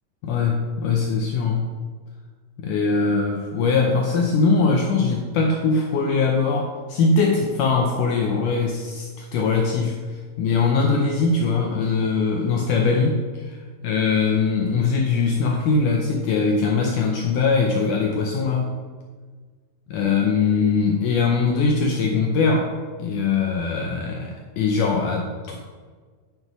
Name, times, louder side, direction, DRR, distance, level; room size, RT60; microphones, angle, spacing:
voice 1, 0.2-1.7 2.6-18.8 19.9-22.7 23.0-25.6, left 4 dB, 80° left, 1 dB, 1.8 m, -21 dB
9.5 x 5.4 x 5.9 m, 1.5 s
omnidirectional pair, 4.7 m